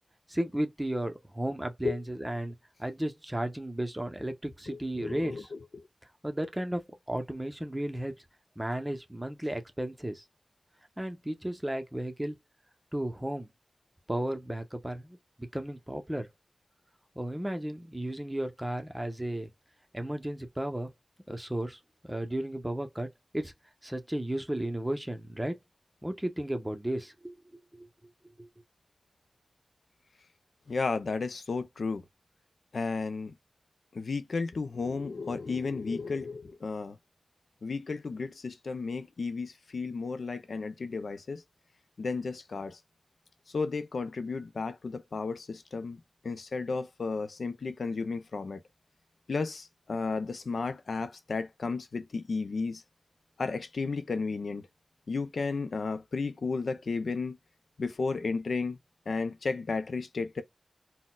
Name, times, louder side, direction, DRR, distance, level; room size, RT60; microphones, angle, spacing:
voice 1, 0.3-2.5 2.8-5.5 6.2-8.1 8.6-10.2 11.0-12.4 12.9-13.5 14.1-16.3 17.2-19.5 19.9-20.9 21.3-23.1 23.3-23.5 23.8-25.6 26.0-27.3 27.7-27.9 28.4-28.5, right 1 dB, 15° right, 0.7 m, -34 dB
voice 2, 4.7-5.9 30.7-32.0 32.7-33.3 33.9-37.0 37.6-41.4 42.0-42.8 43.5-48.6 49.3-52.8 53.4-54.7 55.1-57.4 57.8-58.8 59.1-60.4, left 4 dB, 80° left, 0.4 m, -33 dB
4.0 x 2.1 x 2.3 m
cardioid pair, 40°, 0 cm